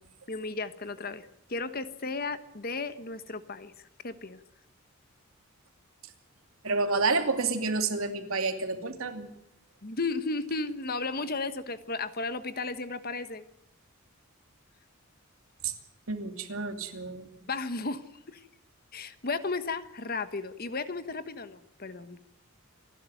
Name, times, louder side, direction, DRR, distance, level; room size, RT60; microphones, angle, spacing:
voice 1, 0.3-3.7 4.0-4.4 9.8-13.5 17.5-18.4 18.9-22.2, left 3 dB, 45° left, 12 dB, 1.3 m, -34 dB
voice 2, 6.6-9.3 15.6-15.7 16.1-17.3, right 3 dB, 75° right, 6 dB, 2.8 m, -29 dB
28.0 x 12.0 x 9.2 m, 0.80 s
head